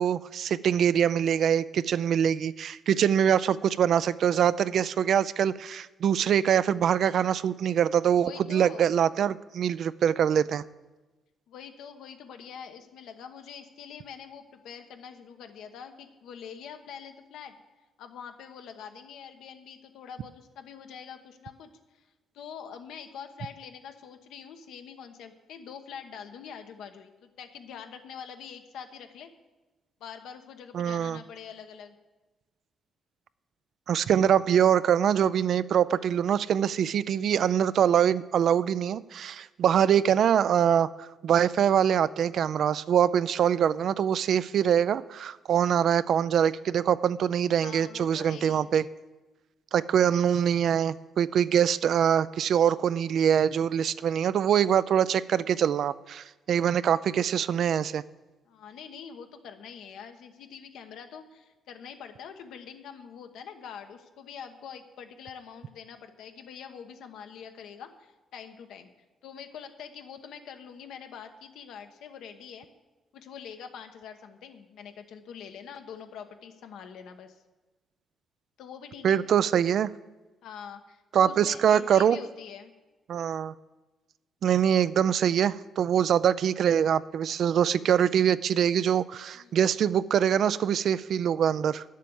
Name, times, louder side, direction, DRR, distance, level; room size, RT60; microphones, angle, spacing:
voice 1, 0.0-10.6 30.7-31.2 33.9-48.8 49.7-58.0 79.0-79.9 81.1-82.2 83.1-83.5 84.4-91.8, right 9 dB, 65° right, 17 dB, 0.4 m, -24 dB
voice 2, 8.2-8.9 11.5-17.5 18.0-22.0 22.3-29.3 30.0-31.9 47.6-48.7 58.5-68.9 69.2-72.7 73.1-77.4 78.6-79.2 80.4-82.7 89.3-89.6, left 7 dB, 80° left, 6 dB, 1.0 m, -44 dB
9.6 x 7.5 x 7.0 m, 1.2 s
cardioid pair, 90°, 0 cm